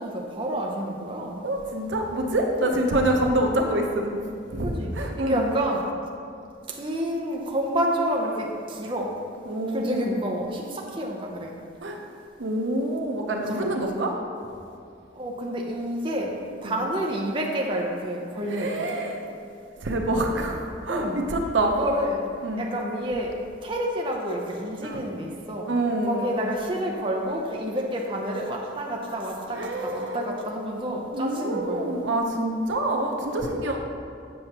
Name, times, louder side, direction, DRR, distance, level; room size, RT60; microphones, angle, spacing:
voice 1, 0.0-1.4 2.6-2.7 4.6-5.9 6.7-9.2 9.7-11.5 13.4-13.7 15.1-19.0 20.9-21.2 21.7-22.3 22.6-25.7 26.0-31.9 33.2-33.4, right 1 dB, 25° right, -1 dB, 0.6 m, -29 dB
voice 2, 1.4-4.2 4.5-5.5 9.5-9.9 11.8-12.0 12.4-14.1 16.6-16.8 18.5-19.2 19.8-21.7 22.4-22.7 24.8-25.0 25.7-26.4 29.5-30.2 31.1-33.8, right 1 dB, 80° right, 2 dB, 0.8 m, -26 dB
7.8 x 6.6 x 2.9 m, 2.4 s
head